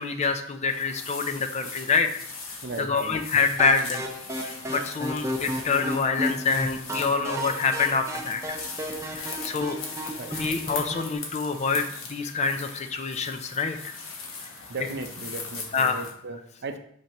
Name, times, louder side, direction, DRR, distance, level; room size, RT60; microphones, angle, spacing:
voice 1, 0.0-2.1 2.8-4.1 4.4-8.6 9.0-9.8 10.3-14.0 15.7-16.0, left 5 dB, 35° left, 8 dB, 0.5 m, -26 dB
sound 1, 0.7-16.1, left 4 dB, 80° left, 1.2 m, -40 dB
voice 2, 2.6-3.1 10.2-10.4 14.7-16.8, right 3 dB, 55° right, 7 dB, 0.6 m, -36 dB
sound 2, 3.6-11.1, equal, 15° right, 0.7 m, -34 dB
5.8 x 5.7 x 3.0 m, 0.67 s
head